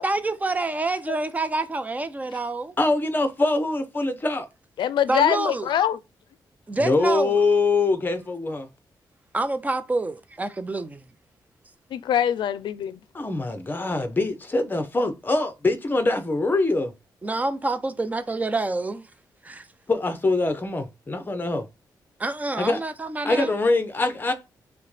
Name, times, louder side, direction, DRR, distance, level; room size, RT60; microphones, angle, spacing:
voice 1, 0.0-2.8 5.1-5.7 6.7-7.4 9.3-11.0 17.2-19.1 19.4-19.7 22.2-23.5, right 2 dB, 20° right, 0.5 m, -27 dB
voice 2, 2.8-4.5 6.8-8.7 13.1-16.9 19.9-21.6 22.6-22.8 23.2-24.3, left 3 dB, 25° left, 0.8 m, -23 dB
voice 3, 4.8-6.0 11.9-13.0, left 10 dB, 90° left, 0.4 m, -23 dB
6.5 x 2.2 x 3.2 m
cardioid pair, 100°, 8 cm